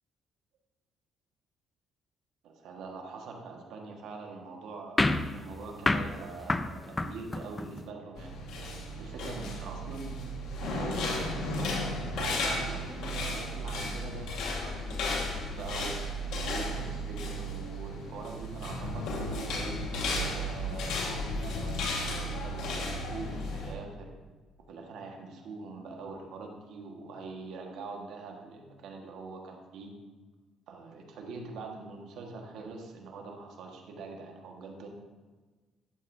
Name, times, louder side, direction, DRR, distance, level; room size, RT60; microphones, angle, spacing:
voice 1, 2.4-8.4 9.0-10.3 10.6-15.9 16.4-19.8 20.3-24.1 24.7-29.9 30.7-34.9, right 3 dB, 75° right, 1 dB, 1.5 m, -43 dB
sound 1, 5.0-7.9, left 2 dB, 15° left, 0.4 m, -30 dB
sound 2, 8.1-23.7, left 1 dB, 80° left, 1.6 m, -34 dB
11.5 x 7.8 x 2.7 m, 1.3 s
cardioid pair, 120°, 0 cm